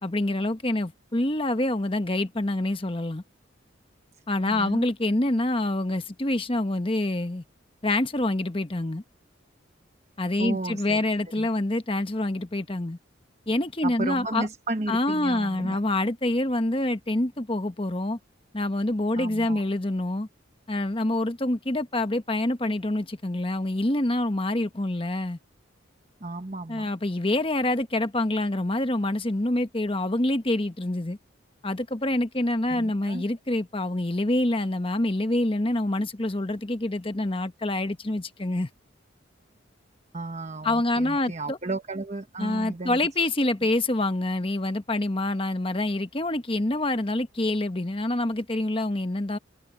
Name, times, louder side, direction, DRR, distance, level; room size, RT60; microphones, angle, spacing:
voice 1, 0.0-3.2 4.3-7.4 7.8-9.0 10.2-13.0 13.5-14.5 14.9-18.2 18.5-20.3 20.7-25.4 26.7-31.2 31.6-38.7 40.6-41.6 42.4-49.4, left 1 dB, 25° left, 1.1 m, -26 dB
voice 2, 4.4-4.8 10.4-11.1 11.4-11.5 13.8-15.8 19.2-19.6 26.2-26.9 32.7-33.2 40.1-43.0, right 2 dB, 35° right, 1.1 m, -33 dB
head